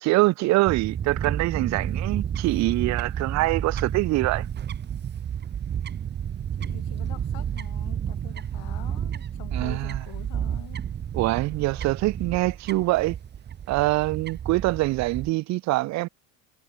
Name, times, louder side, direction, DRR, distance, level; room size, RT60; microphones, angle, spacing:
voice 1, 0.0-4.5 9.5-10.0 11.1-13.2 13.7-16.1, right 20 dB, 45° right, 0.5 m, -24 dB
Fowl / Bird, 0.7-15.3, right 9 dB, 25° right, 1.0 m, -31 dB
voice 2, 6.6-10.8, left 22 dB, 65° left, 4.1 m, -45 dB
cardioid pair, 130°, 41 cm